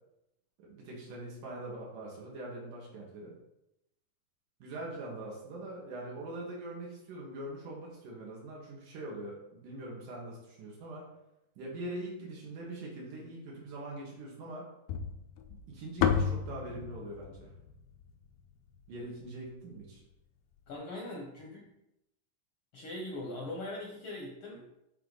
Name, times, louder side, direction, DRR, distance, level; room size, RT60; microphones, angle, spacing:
voice 1, 0.6-3.4 4.6-11.0 11.6-14.6 15.7-17.5 18.9-20.0, right 1 dB, 80° right, -4 dB, 3.2 m, -43 dB
sound 1, 14.9-19.2, left 7 dB, 90° left, 2.2 m, -33 dB
voice 2, 20.7-21.6 22.7-24.7, left 1 dB, 65° left, -2 dB, 1.4 m, -41 dB
10.5 x 3.9 x 4.0 m, 0.86 s
omnidirectional pair, 3.6 m